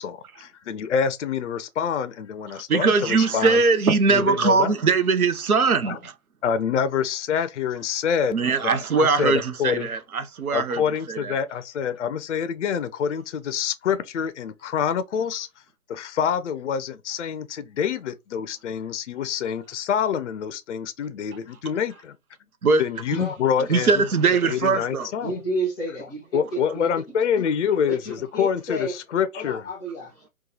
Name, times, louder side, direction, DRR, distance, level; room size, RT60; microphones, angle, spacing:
voice 1, 0.0-3.6 4.1-4.7 5.8-6.0 6.4-8.4 8.6-9.9 10.5-15.5 15.9-22.1 22.8-24.0 24.4-25.4 26.3-29.6, left 7 dB, 55° left, 0.5 m, -26 dB
voice 2, 2.5-6.1 8.3-10.8 11.1-11.4 22.6-22.8 23.7-25.1, right 4 dB, 85° right, 0.7 m, -21 dB
voice 3, 23.1-23.7 24.7-24.8 25.2-27.2 27.9-28.9 29.3-30.3, right 1 dB, ahead, 0.4 m, -32 dB
2.9 x 2.3 x 3.8 m
figure-of-eight pair, 135°, 42 cm